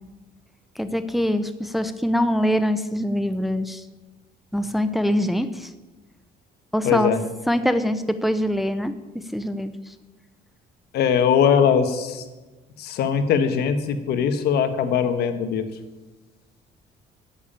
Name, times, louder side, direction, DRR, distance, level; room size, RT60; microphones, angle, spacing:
voice 1, 0.8-3.8 4.5-5.7 6.7-7.1 7.5-8.9 9.3-9.9, equal, ahead, 10 dB, 0.7 m, -23 dB
voice 2, 6.8-7.2 10.9-12.2 12.8-15.6, left 7 dB, 70° left, 9 dB, 1.3 m, -21 dB
10.5 x 7.2 x 8.8 m, 1.2 s
cardioid pair, 110°, 17 cm